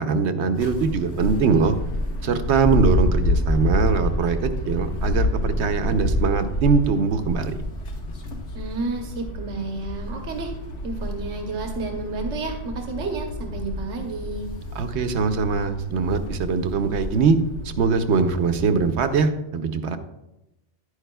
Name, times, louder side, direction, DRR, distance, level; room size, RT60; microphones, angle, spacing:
voice 1, 0.0-1.8 2.2-7.6 14.8-17.4 17.8-20.0, right 5 dB, 70° right, 9 dB, 0.9 m, -22 dB
sound 1, 0.5-19.2, left 1 dB, 75° left, 1.4 m, -28 dB
voice 2, 8.5-10.5 10.8-14.5, right 3 dB, 85° right, 3 dB, 1.3 m, -31 dB
10.5 x 9.6 x 2.3 m, 0.93 s
omnidirectional pair, 1.2 m